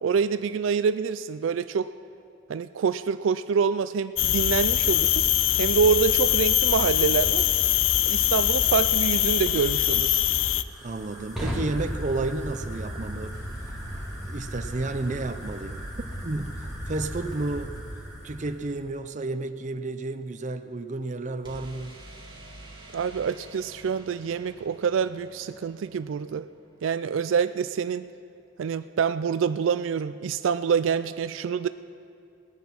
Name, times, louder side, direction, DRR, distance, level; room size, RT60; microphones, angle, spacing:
voice 1, 0.0-1.9 2.5-5.2 5.6-7.5 8.1-10.2 22.9-26.5 26.8-28.1 28.6-31.7, right 6 dB, 85° right, 0.4 m, -26 dB
sound 1, 4.2-10.6, left 12 dB, 90° left, 0.5 m, -23 dB
Fire, 9.8-18.8, equal, ahead, 3.0 m, -36 dB
voice 2, 10.8-13.4 14.2-15.9 16.1-17.8 18.2-21.9, right 2 dB, 40° right, 0.6 m, -32 dB
sound 2, 13.3-15.3 21.4-27.2, right 1 dB, 25° right, 2.1 m, -49 dB
19.0 x 9.5 x 5.9 m
head